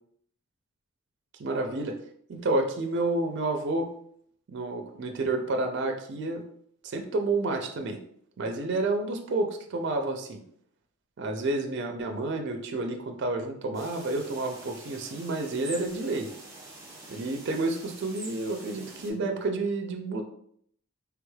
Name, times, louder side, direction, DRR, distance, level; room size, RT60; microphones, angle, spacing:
voice 1, 1.4-2.0 2.3-3.9 4.5-6.4 6.8-8.0 8.4-10.4 11.2-16.3 17.1-20.2, right 2 dB, 50° right, 4 dB, 0.4 m, -30 dB
sound 1, 13.7-19.1, right 2 dB, 15° right, 0.7 m, -45 dB
3.4 x 3.1 x 2.2 m, 0.66 s
head